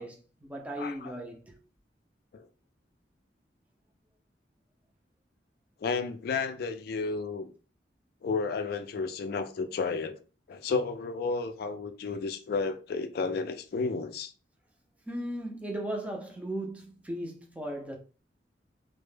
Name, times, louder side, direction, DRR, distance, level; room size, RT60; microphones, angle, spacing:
voice 1, 0.0-1.5 15.1-18.0, right 1 dB, 10° right, 0.4 m, -37 dB
voice 2, 0.8-1.1 2.3-2.5 5.8-7.5 8.2-10.2 10.5-14.3, left 4 dB, 60° left, 0.3 m, -32 dB
2.1 x 2.0 x 3.1 m
head